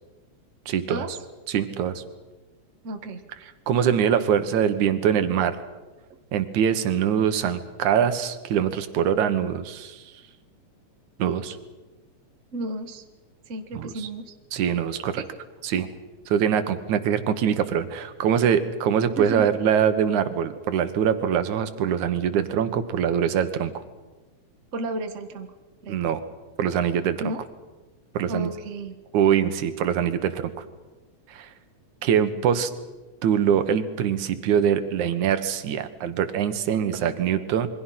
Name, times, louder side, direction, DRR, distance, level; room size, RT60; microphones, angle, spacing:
voice 1, 0.7-1.0 1.5-2.0 3.7-5.6 6.3-10.0 11.2-11.6 13.8-13.9 14.5-15.2 15.6-15.9 16.3-23.7 25.9-26.2 26.6-27.2 28.1-28.5 29.1-30.5 31.3-31.5 32.0-32.7 33.2-37.7, right 8 dB, 90° right, 10 dB, 2.7 m, -23 dB
voice 2, 2.8-3.2 12.5-13.0 13.5-14.3 15.2-15.3 15.8-15.9 19.1-19.5 24.7-25.5 25.8-26.0 27.2-27.4 28.3-28.9 36.9-37.1, right 2 dB, 35° right, 7 dB, 1.3 m, -32 dB
27.5 x 23.0 x 5.8 m, 1.2 s
omnidirectional pair, 3.3 m